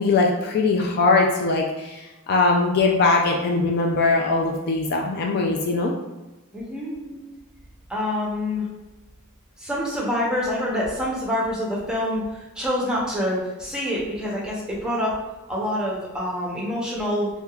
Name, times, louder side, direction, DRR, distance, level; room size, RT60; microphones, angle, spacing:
voice 1, 0.0-5.9, left 3 dB, 45° left, 0 dB, 0.3 m, -21 dB
voice 2, 6.5-7.2 7.9-8.7 9.6-15.2 15.5-17.3, left 1 dB, 5° right, -5 dB, 0.7 m, -26 dB
3.3 x 2.7 x 2.3 m, 1.1 s
head